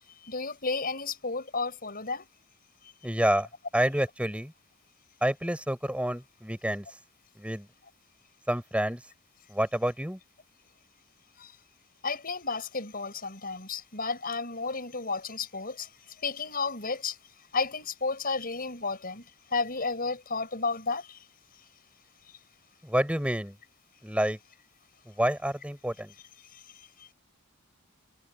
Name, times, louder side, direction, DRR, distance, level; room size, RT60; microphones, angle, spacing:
voice 1, 0.2-2.2 11.4-11.5 12.0-17.2 17.5-19.2 19.5-21.2 26.5-26.6 27.0-27.1, left 4 dB, 40° left, 6.5 m, -32 dB
voice 2, 3.0-3.5 3.7-4.5 5.2-6.9 7.4-7.7 8.5-9.0 9.5-10.2 22.8-23.6 24.0-24.4 25.1-26.1, right 1 dB, 5° right, 7.9 m, -28 dB
head